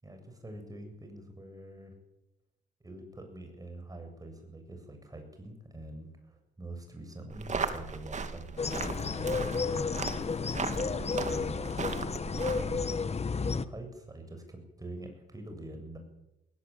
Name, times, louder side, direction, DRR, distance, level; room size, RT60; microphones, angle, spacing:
voice 1, 0.0-1.9 2.8-10.3 10.7-12.1 12.6-13.2 13.5-16.0, right 1 dB, 20° right, 5 dB, 8.0 m, -45 dB
sound 1, 7.3-12.9, right 4 dB, 35° right, 2.6 m, -37 dB
sound 2, 8.6-13.6, left 4 dB, 30° left, 1.3 m, -32 dB
20.5 x 17.5 x 9.3 m, 0.90 s
cardioid pair, 90°, 20 cm